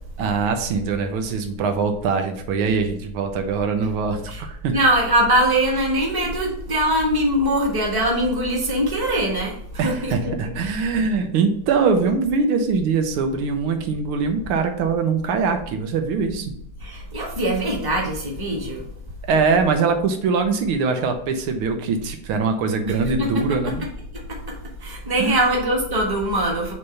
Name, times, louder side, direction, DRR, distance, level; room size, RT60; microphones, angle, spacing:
voice 1, 0.2-4.8 9.8-16.6 19.3-23.8 25.2-25.4, right 5 dB, 85° right, 6 dB, 1.7 m, -22 dB
voice 2, 4.7-10.3 16.8-18.8 22.9-23.4 24.1-26.7, right 1 dB, 10° right, -2 dB, 1.3 m, -22 dB
6.6 x 3.2 x 5.5 m, 0.69 s
omnidirectional pair, 2.3 m